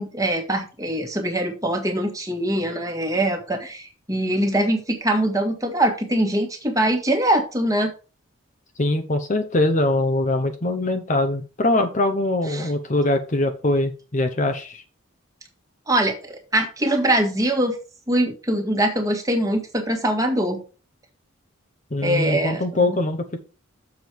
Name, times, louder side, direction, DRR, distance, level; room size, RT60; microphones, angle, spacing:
voice 1, 0.0-7.9 12.5-12.7 15.9-17.8 18.1-20.6 22.0-23.0, right 1 dB, 15° right, 5 dB, 1.6 m, -23 dB
voice 2, 8.8-14.8 21.9-23.4, left 2 dB, 35° left, 6 dB, 0.9 m, -22 dB
7.3 x 6.3 x 4.6 m, 0.34 s
head